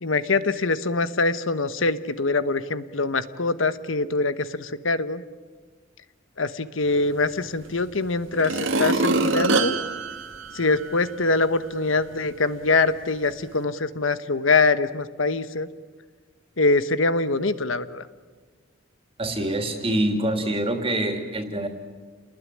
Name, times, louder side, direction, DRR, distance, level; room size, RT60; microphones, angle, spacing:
voice 1, 0.0-5.2 6.4-9.8 10.5-15.7 16.6-18.1, left 3 dB, 85° left, 13 dB, 1.3 m, -24 dB
sound 1, 7.6-7.7 8.3-11.2 11.6-11.7, right 3 dB, 80° right, 1.8 m, -25 dB
voice 2, 19.2-21.7, right 1 dB, 30° right, 5 dB, 2.9 m, -25 dB
29.5 x 20.0 x 10.0 m, 1.4 s
head